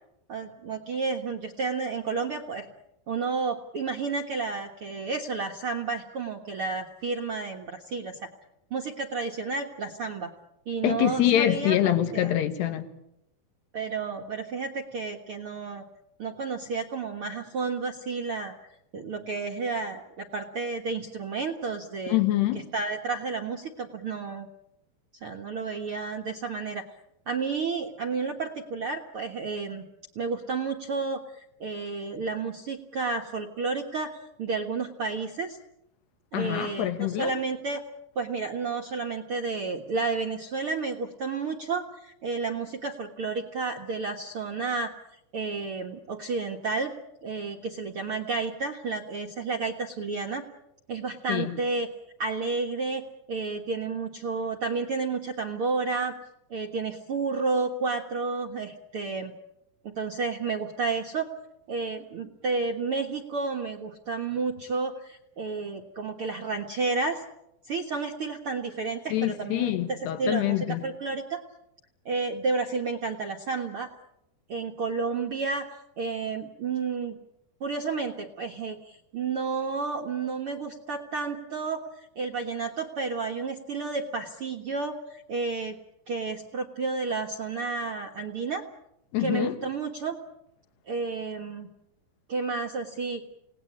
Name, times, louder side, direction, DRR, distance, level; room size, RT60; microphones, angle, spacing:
voice 1, 0.3-2.7 3.1-8.3 8.7-10.3 10.6-11.8 12.1-12.3 13.7-15.8 16.2-18.5 18.9-22.2 22.7-24.5 25.2-26.8 27.3-29.9 30.1-35.6 36.3-37.8 38.1-44.9 45.3-46.9 47.2-50.5 50.9-51.9 52.2-53.0 53.3-56.2 56.5-59.3 59.8-61.3 61.7-67.2 67.6-71.4 72.0-73.9 74.5-77.2 77.6-81.9 82.1-85.8 86.1-88.6 89.2-90.2 90.8-91.7 92.3-93.2, right 4 dB, 60° right, 1.5 m, -31 dB
voice 2, 10.8-12.9 22.1-22.7 36.3-37.3 51.3-51.6 69.1-70.8 89.1-89.6, left 13 dB, 85° left, 3.7 m, -25 dB
29.0 x 18.5 x 8.7 m
omnidirectional pair, 4.6 m